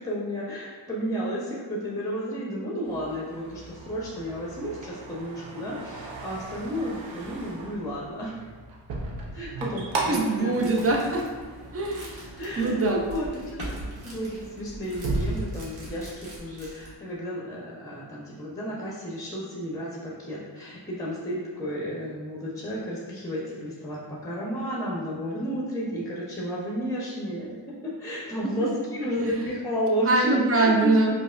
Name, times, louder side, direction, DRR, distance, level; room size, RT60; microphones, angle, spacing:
voice 1, 0.0-8.4 9.3-10.7 12.4-31.1, equal, 5° left, -5 dB, 0.7 m, -32 dB
sound 1, 2.8-11.8 12.2-12.7 13.3-13.5 13.8-15.5, right 2 dB, 85° right, 0.7 m, -35 dB
voice 2, 10.1-11.2 11.7-12.2 12.6-13.0 28.4-28.7 29.2-29.4 30.1-31.1, right 2 dB, 30° right, 1 dB, 0.6 m, -23 dB
sound 2, 10.5-17.0, right 1 dB, 55° right, 1.2 m, -42 dB
4.6 x 2.2 x 2.5 m, 1.5 s
cardioid pair, 70°, 44 cm